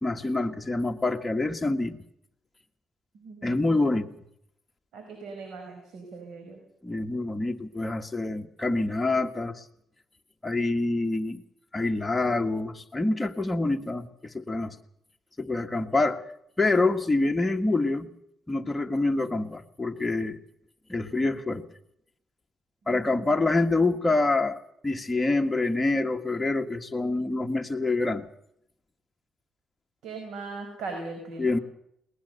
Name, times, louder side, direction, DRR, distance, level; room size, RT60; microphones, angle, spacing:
voice 1, 0.0-2.0 3.4-4.1 6.8-9.6 10.4-11.4 11.7-14.8 15.4-16.2 16.6-18.1 18.5-20.4 20.9-21.6 22.9-28.3 31.4-31.6, left 2 dB, 15° left, 4 dB, 1.8 m, -26 dB
voice 2, 3.1-3.7 4.9-6.6 22.8-23.3 30.0-31.6, right 3 dB, 75° right, 4 dB, 5.0 m, -39 dB
21.5 x 19.5 x 6.7 m, 0.75 s
cardioid pair, 90°, 0 cm